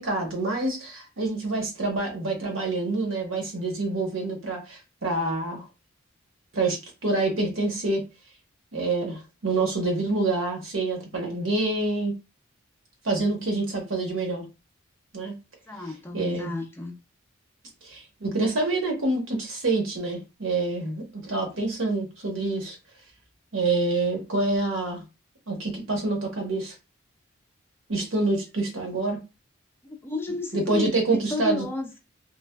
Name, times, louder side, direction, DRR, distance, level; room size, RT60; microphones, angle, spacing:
voice 1, 0.0-5.6 6.5-8.0 8.7-12.1 13.0-14.4 15.1-15.3 16.1-16.5 17.8-22.8 23.5-25.0 25.5-26.7 27.9-29.2 30.5-31.7, right 2 dB, 75° right, 0.9 m, -27 dB
voice 2, 15.7-17.0 29.8-32.0, left 3 dB, 10° left, 0.4 m, -32 dB
3.2 x 2.0 x 2.2 m
head